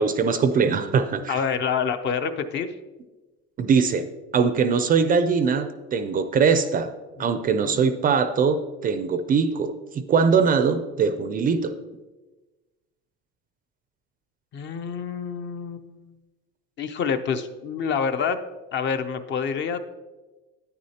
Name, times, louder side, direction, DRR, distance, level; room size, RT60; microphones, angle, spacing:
voice 1, 0.0-1.4 3.6-4.1 4.3-6.9 7.2-11.7, right 5 dB, 30° right, 10 dB, 0.4 m, -22 dB
voice 2, 1.3-2.7 7.2-7.9 14.5-16.1 16.8-18.4 18.7-19.8, left 6 dB, 40° left, 9 dB, 0.5 m, -27 dB
9.7 x 9.5 x 2.8 m, 1.2 s
cardioid pair, 155°, 30 cm